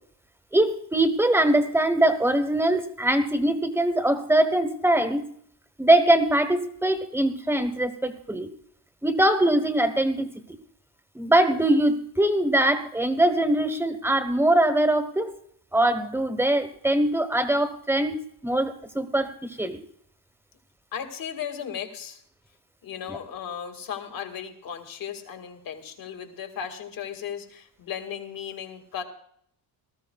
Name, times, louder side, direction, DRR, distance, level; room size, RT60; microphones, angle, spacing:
voice 1, 0.5-5.3 5.8-8.5 9.0-10.3 11.1-15.3 15.7-19.8 23.1-23.2, right 1 dB, 5° right, 8 dB, 1.1 m, -22 dB
voice 2, 20.9-22.2 22.8-29.0, left 8 dB, 55° left, 5 dB, 2.0 m, -36 dB
19.5 x 14.5 x 2.3 m, 0.65 s
cardioid pair, 150°, 42 cm